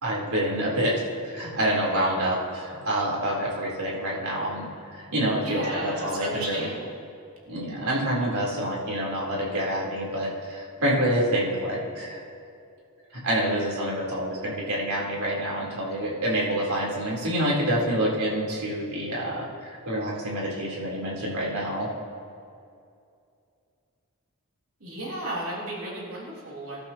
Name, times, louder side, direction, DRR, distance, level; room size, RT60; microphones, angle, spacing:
voice 1, 0.0-6.7 7.5-12.2 13.1-21.9, right 1 dB, 85° right, -4 dB, 3.7 m, -27 dB
voice 2, 5.4-6.9 24.8-26.8, right 1 dB, 70° right, -6 dB, 3.4 m, -34 dB
25.5 x 12.0 x 3.0 m, 2.5 s
head